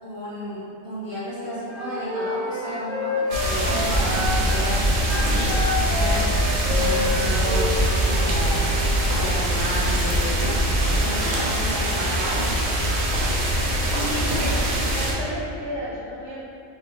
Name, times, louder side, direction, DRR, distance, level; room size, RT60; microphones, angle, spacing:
voice 1, 0.0-6.2 6.7-8.7 9.1-12.5, equal, 20° left, -14 dB, 0.9 m, -32 dB
Wind instrument woodwind instrument, 1.7-4.7 5.0-8.5, left 3 dB, 85° left, 1.0 m, -29 dB
sound 1, 3.3-15.1, equal, 65° right, 0.8 m, -24 dB
Fire, 3.8-11.0, right 2 dB, 65° left, 0.8 m, -26 dB
voice 2, 13.9-16.4, equal, 25° right, -13 dB, 0.8 m, -33 dB
3.1 x 2.1 x 2.8 m, 2.7 s
omnidirectional pair, 1.3 m